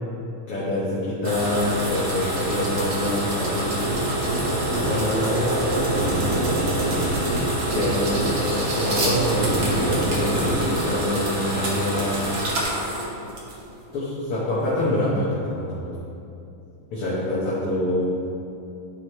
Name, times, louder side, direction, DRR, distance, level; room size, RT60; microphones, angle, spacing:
voice 1, 0.5-3.8 4.7-5.5 6.0-6.4 7.7-12.2 13.9-16.0 16.9-18.1, left 1 dB, 60° left, -9 dB, 1.6 m, -26 dB
sound 1, 1.2-13.8, right 1 dB, 70° right, 1.1 m, -27 dB
sound 2, 3.8-10.6, right 1 dB, 40° right, 2.2 m, -26 dB
12.5 x 4.6 x 3.2 m, 2.7 s
omnidirectional pair, 4.0 m